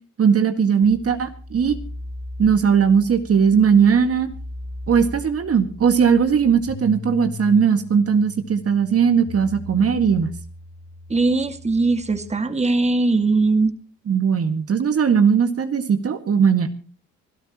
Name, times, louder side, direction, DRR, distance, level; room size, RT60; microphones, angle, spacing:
voice 1, 0.2-1.8 2.4-4.3 4.9-10.3 14.1-16.7, right 6 dB, 50° right, 8 dB, 1.9 m, -18 dB
sound 1, 0.8-12.3, left 2 dB, 75° left, 6.6 m, -38 dB
voice 2, 11.1-13.7, right 3 dB, 20° right, 9 dB, 2.0 m, -20 dB
25.5 x 13.0 x 3.0 m, 0.37 s
cardioid pair, 90°, 30 cm